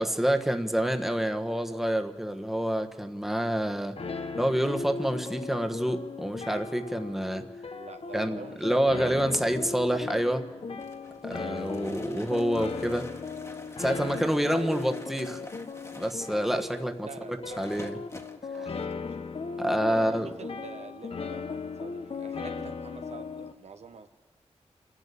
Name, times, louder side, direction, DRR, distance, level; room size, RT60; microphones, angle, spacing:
voice 1, 0.0-4.0 4.4-7.4 8.1-10.5 11.2-13.1 13.8-15.4 16.0-17.1 17.6-18.0 18.6-18.7 19.6-20.3, equal, 5° right, 6 dB, 1.3 m, -27 dB
sound 1, 4.0-23.5, left 4 dB, 60° left, 1.0 m, -37 dB
voice 2, 7.7-9.0 14.4-14.8 17.0-18.1 18.5-19.0 20.0-24.1, right 5 dB, 75° right, 8 dB, 1.1 m, -45 dB
sound 2, 10.8-18.4, left 2 dB, 25° left, 1.7 m, -48 dB
28.0 x 11.0 x 8.3 m, 1.4 s
wide cardioid pair, 80°, 11 cm